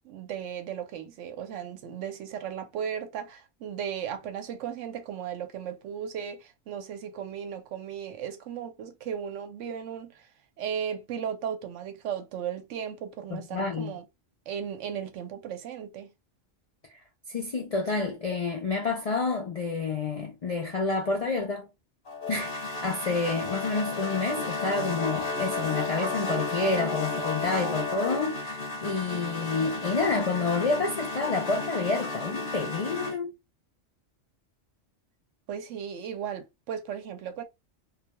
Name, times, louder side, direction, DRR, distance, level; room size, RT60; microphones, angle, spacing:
voice 1, 0.0-10.3 10.6-14.1 14.5-16.1 35.5-37.4, right 8 dB, 85° right, 0.9 m, -36 dB
voice 2, 13.3-13.9 17.3-21.7 22.3-33.3, left 4 dB, 65° left, 0.3 m, -29 dB
sound 1, 22.1-33.2, left 3 dB, 50° left, 0.8 m, -33 dB
2.3 x 2.2 x 2.8 m
omnidirectional pair, 1.2 m